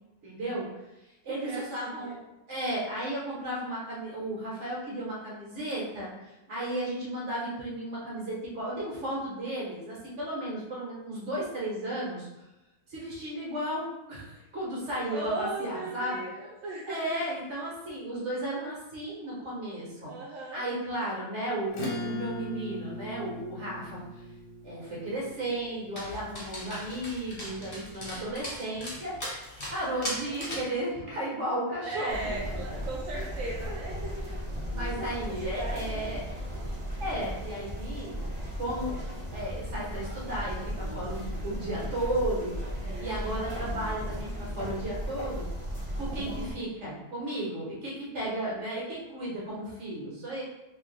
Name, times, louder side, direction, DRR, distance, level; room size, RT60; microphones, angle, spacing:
voice 1, 0.2-0.7 1.2-2.2 2.5-12.3 12.9-16.2 16.9-20.1 20.5-24.0 24.6-29.2 29.7-32.5 33.1-33.2 33.7-33.8 34.7-36.3 37.0-38.2 38.6-39.0 39.3-42.6 43.0-45.5 46.0-50.4, right 1 dB, 65° right, -5 dB, 1.6 m, -34 dB
voice 2, 1.3-2.1 15.1-17.1 20.0-20.6 30.3-30.6 31.8-34.6 35.2-36.3 46.5-46.8, right 2 dB, 85° right, -4 dB, 1.0 m, -38 dB
Acoustic guitar / Strum, 21.7-26.7, left 1 dB, 50° left, 0.9 m, -39 dB
Dog, 26.0-30.8, equal, 35° left, 1.2 m, -39 dB
sound 1, 32.1-46.5, equal, 30° right, 0.9 m, -36 dB
3.2 x 3.0 x 3.3 m, 0.99 s
omnidirectional pair, 1.3 m